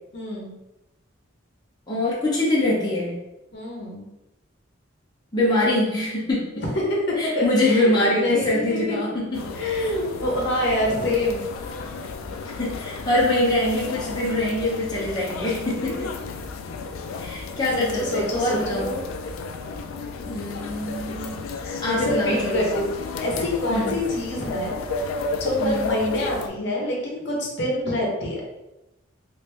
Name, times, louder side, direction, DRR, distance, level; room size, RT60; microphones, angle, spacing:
voice 1, 0.1-0.5 3.5-4.1 6.6-9.1 9.5-11.9 17.8-19.0 21.9-22.9 23.2-24.8 25.4-28.4, left 1 dB, 55° left, -2 dB, 0.8 m, -26 dB
voice 2, 1.9-3.2 5.3-6.6 7.2-9.6 12.4-16.1 17.2-18.9 20.3-22.6 23.7-23.9 25.6-25.9, left 1 dB, 20° left, -7 dB, 0.7 m, -24 dB
sound 1, 9.3-26.5, left 4 dB, 85° left, 0.4 m, -32 dB
3.1 x 2.5 x 3.2 m, 0.97 s
head